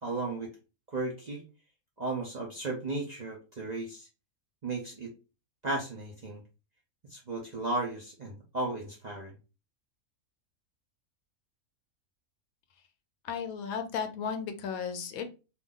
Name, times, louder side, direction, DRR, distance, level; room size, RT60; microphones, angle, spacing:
voice 1, 0.0-0.5 0.9-1.4 2.0-4.1 4.6-5.1 5.6-6.4 7.1-9.3, right 2 dB, 45° right, -2 dB, 0.5 m, -35 dB
voice 2, 13.2-15.3, left 6 dB, 80° left, 7 dB, 1.1 m, -34 dB
2.6 x 2.3 x 3.7 m, 0.31 s
omnidirectional pair, 1.5 m